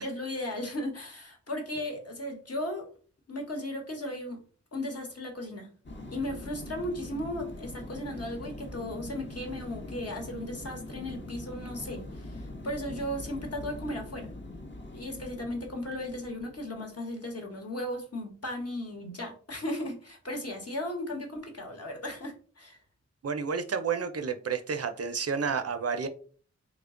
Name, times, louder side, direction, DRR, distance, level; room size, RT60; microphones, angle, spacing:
voice 1, 0.0-2.9 3.3-4.4 4.7-5.7 6.1-14.3 14.9-22.8, left 1 dB, 55° left, 2 dB, 1.1 m, -36 dB
sound 1, 5.8-16.8, left 1 dB, 40° left, 0.7 m, -42 dB
voice 2, 23.2-26.1, right 6 dB, 55° right, 8 dB, 0.5 m, -30 dB
3.2 x 2.2 x 3.6 m, 0.42 s
cardioid pair, 45°, 29 cm